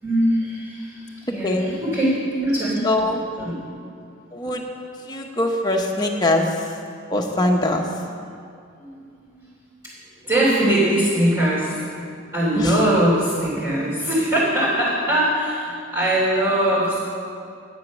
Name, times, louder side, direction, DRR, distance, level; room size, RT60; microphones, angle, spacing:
voice 1, 0.0-3.6 8.8-8.9 9.3-9.5 10.2-11.9 12.3-17.0, right 1 dB, 15° right, -12 dB, 3.3 m, -21 dB
voice 2, 1.4-1.8 2.8-3.2 4.3-4.6 5.1-6.5 7.1-7.8 12.6-12.7, left 1 dB, 20° left, 1 dB, 1.1 m, -22 dB
11.0 x 10.0 x 6.3 m, 2.3 s
head